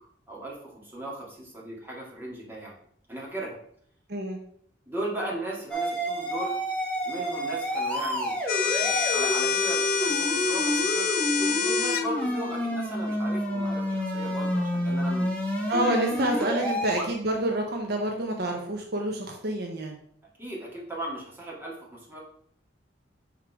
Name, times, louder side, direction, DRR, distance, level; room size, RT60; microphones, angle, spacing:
voice 1, 0.3-2.8 3.1-3.6 4.9-6.5 7.0-11.1 11.4-15.3 15.7-16.5 20.4-22.2, right 1 dB, 10° right, -4 dB, 1.8 m, -37 dB
sound 1, 5.7-17.0, equal, 5° left, 1.1 m, -29 dB
sound 2, 8.5-12.1, left 7 dB, 50° left, 0.4 m, -27 dB
voice 2, 15.7-20.0, right 1 dB, 55° right, 2 dB, 0.8 m, -28 dB
6.0 x 3.7 x 4.6 m, 0.65 s
head